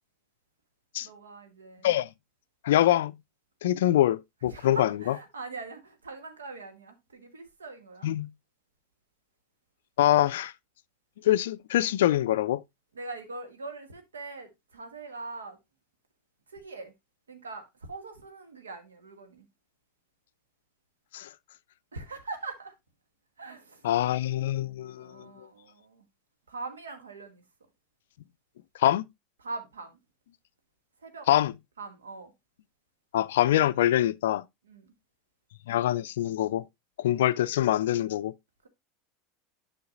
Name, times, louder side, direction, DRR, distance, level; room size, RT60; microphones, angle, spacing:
voice 1, 1.0-1.9 4.4-8.2 12.9-15.6 16.5-16.9 17.3-19.5 21.9-22.7 23.4-24.0 24.9-26.0 26.5-27.4 29.4-30.0 31.0-31.3 31.8-32.3 34.6-34.9 38.6-38.7, right 3 dB, 80° right, 1.3 m, -42 dB
voice 2, 2.6-3.1 3.6-4.9 8.0-8.3 10.0-10.5 11.2-12.6 21.1-21.3 23.8-25.5 28.8-29.0 31.3-31.5 33.1-34.4 35.7-36.6 37.0-38.3, left 13 dB, 70° left, 0.3 m, -24 dB
10.5 x 5.6 x 2.5 m
figure-of-eight pair, 80°, 0 cm